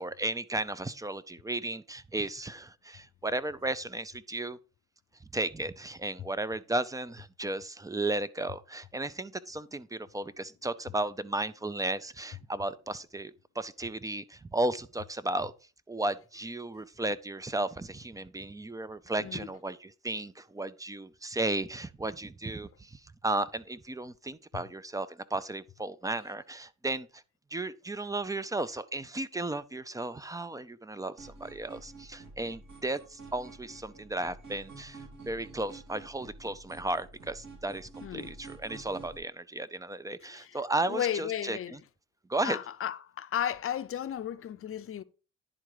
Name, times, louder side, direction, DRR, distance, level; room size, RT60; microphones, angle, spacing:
voice 1, 0.0-4.6 5.3-15.5 15.9-27.2 27.5-41.8 42.3-42.6, right 2 dB, 10° right, 0.4 m, -34 dB
sound 1, 31.2-39.2, right 3 dB, 65° right, 2.8 m, -49 dB
voice 2, 38.0-38.3 40.3-40.6 40.9-41.8 42.4-45.0, left 10 dB, 45° left, 0.6 m, -34 dB
10.5 x 3.7 x 4.8 m
cardioid pair, 90°, 30 cm